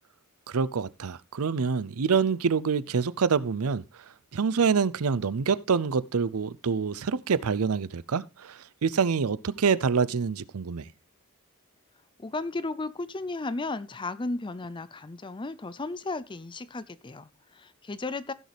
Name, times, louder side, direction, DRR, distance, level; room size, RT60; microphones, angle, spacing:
voice 1, 0.5-3.8 4.3-10.9, right 5 dB, 85° right, 0.6 m, -26 dB
voice 2, 12.2-18.3, left 3 dB, 20° left, 0.5 m, -34 dB
16.0 x 6.4 x 3.4 m
head